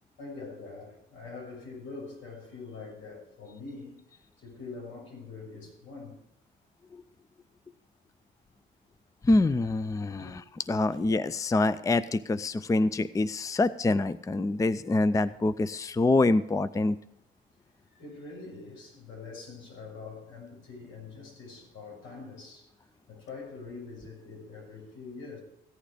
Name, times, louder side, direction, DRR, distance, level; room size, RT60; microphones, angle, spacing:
voice 1, 0.2-3.9 4.4-6.2 10.2-10.3 10.9-11.0 17.9-25.4, left 4 dB, 85° left, 6.6 m, -44 dB
voice 2, 9.2-10.4 10.7-17.0, left 2 dB, 15° left, 0.5 m, -25 dB
15.0 x 9.1 x 5.0 m
cardioid pair, 90°, 20 cm